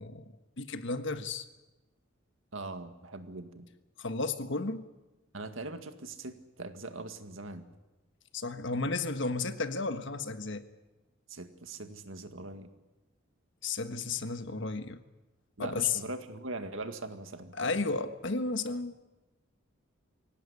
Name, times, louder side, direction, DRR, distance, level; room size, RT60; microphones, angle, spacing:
voice 1, 0.0-1.4 4.0-4.9 8.3-10.6 13.6-15.0 15.6-16.0 17.5-18.9, left 3 dB, 65° left, 9 dB, 1.4 m, -33 dB
voice 2, 2.5-3.7 5.3-7.7 11.3-12.7 15.6-17.5, right 2 dB, 75° right, 8 dB, 2.0 m, -41 dB
23.5 x 17.5 x 9.7 m, 1.1 s
head